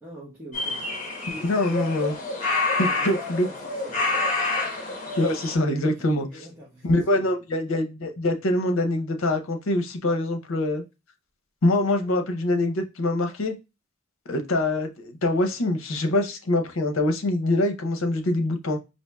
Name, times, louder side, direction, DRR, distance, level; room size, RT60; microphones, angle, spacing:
voice 1, 0.0-0.8 1.3-1.5 2.8-4.1 5.9-7.3, right 1 dB, 10° right, 0.9 m, -45 dB
sound 1, 0.5-5.5, left 3 dB, 35° left, 0.9 m, -28 dB
voice 2, 1.3-2.1 2.8-3.5 5.2-6.2 6.8-10.8 11.6-13.6 14.3-18.8, left 1 dB, 70° left, 0.6 m, -24 dB
4.3 x 2.7 x 2.2 m
head